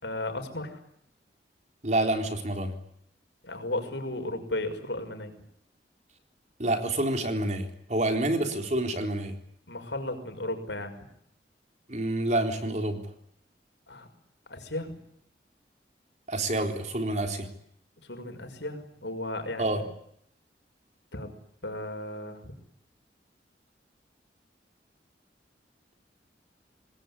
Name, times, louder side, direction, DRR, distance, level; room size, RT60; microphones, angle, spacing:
voice 1, 0.0-0.8 3.4-5.3 9.7-11.0 13.9-14.1 14.5-15.0 18.1-19.8 21.1-21.3 21.6-22.5, left 1 dB, 85° left, 7 dB, 6.1 m, -35 dB
voice 2, 1.8-2.7 6.6-9.3 11.9-13.0 16.3-17.5 19.6-19.8, right 1 dB, 40° right, 5 dB, 3.8 m, -28 dB
27.0 x 20.0 x 9.9 m, 0.71 s
head